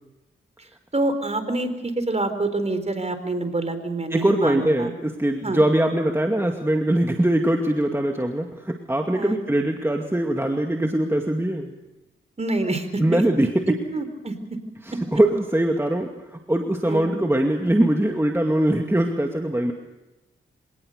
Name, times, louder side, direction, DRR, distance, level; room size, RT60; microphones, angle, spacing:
voice 1, 0.9-4.9 5.4-5.6 9.1-9.4 12.4-13.2 13.9-14.6 14.9-15.0 16.8-17.1, right 2 dB, 30° right, 9 dB, 4.1 m, -26 dB
voice 2, 4.1-11.7 13.0-13.5 14.9-19.7, right 1 dB, 10° right, 3 dB, 2.3 m, -22 dB
25.5 x 18.5 x 6.7 m, 1.0 s
cardioid pair, 60°, 21 cm